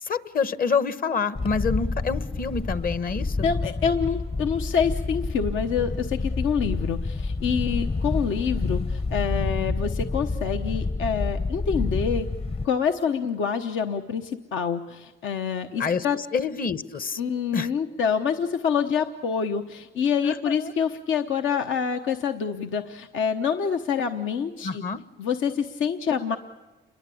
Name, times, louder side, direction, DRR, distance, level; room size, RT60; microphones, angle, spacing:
voice 1, 0.0-3.4 15.8-17.2 17.5-17.7 20.2-20.7 24.6-25.0, left 5 dB, 45° left, 13 dB, 1.2 m, -27 dB
Wind, 1.3-12.7, left 3 dB, 30° left, 0.9 m, -28 dB
voice 2, 3.4-12.3 12.6-16.2 17.2-24.8 25.2-26.4, left 7 dB, 80° left, 5 dB, 1.1 m, -26 dB
29.0 x 22.5 x 8.5 m, 1.2 s
cardioid pair, 90°, 20 cm